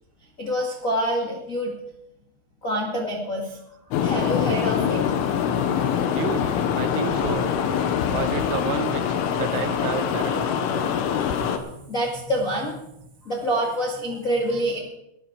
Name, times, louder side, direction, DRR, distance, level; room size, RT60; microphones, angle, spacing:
voice 1, 0.4-1.7 2.6-3.6 3.9-5.0 8.0-8.1 11.2-11.3 11.9-12.8 13.2-14.8, equal, 55° left, -2 dB, 0.9 m, -26 dB
sound 1, 3.9-11.6, left 8 dB, 85° left, 3.6 m, -24 dB
voice 2, 6.1-6.5 6.8-7.5 8.1-10.9, right 10 dB, 80° right, 11 dB, 3.2 m, -31 dB
Slam, 7.1-9.0 9.2-9.3, left 3 dB, 10° left, 3.9 m, -40 dB
19.0 x 10.5 x 4.7 m, 0.86 s
omnidirectional pair, 5.5 m